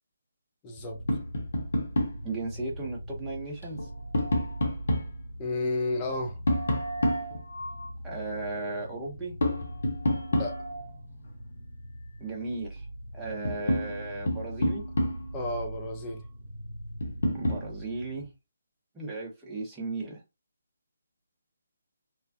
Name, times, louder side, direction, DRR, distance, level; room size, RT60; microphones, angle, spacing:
voice 1, 0.6-1.0 5.4-6.4 10.3-10.6 15.3-16.2, left 2 dB, 20° left, 0.7 m, -32 dB
sound 1, 0.7-18.3, right 1 dB, 30° right, 1.0 m, -42 dB
Tap, 1.1-2.3 3.6-5.2 6.5-7.9 9.4-10.9 12.8-12.9 13.2-15.4 17.0-17.7, left 1 dB, 60° left, 0.9 m, -29 dB
voice 2, 2.2-3.9 8.0-9.4 12.2-12.9 13.1-14.9 17.3-18.3 18.9-20.2, right 3 dB, 10° right, 0.9 m, -36 dB
3.2 x 2.1 x 2.5 m
figure-of-eight pair, 145°, 0 cm